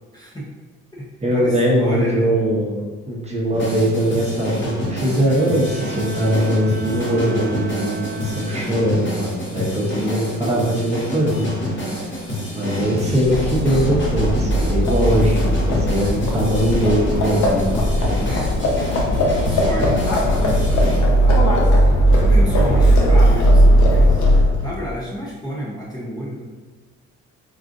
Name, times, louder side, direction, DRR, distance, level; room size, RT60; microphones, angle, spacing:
voice 1, 0.1-0.5 0.9-1.1 1.3-2.3 11.8-12.2 15.9-16.5 18.2-18.5 19.1-24.2 24.6-26.4, equal, 15° left, -6 dB, 0.6 m, -32 dB
voice 2, 1.2-11.5 12.5-15.4 15.7-18.2, equal, 20° right, -4 dB, 0.8 m, -21 dB
sound 1, 3.5-21.0, left 1 dB, 40° left, 1.0 m, -28 dB
Bowed string instrument, 5.0-9.1, right 3 dB, 65° right, 0.5 m, -35 dB
Livestock farm animals working animals, 13.1-24.7, equal, 75° left, 0.7 m, -17 dB
3.8 x 2.3 x 2.5 m, 1.3 s
cardioid pair, 90°, 30 cm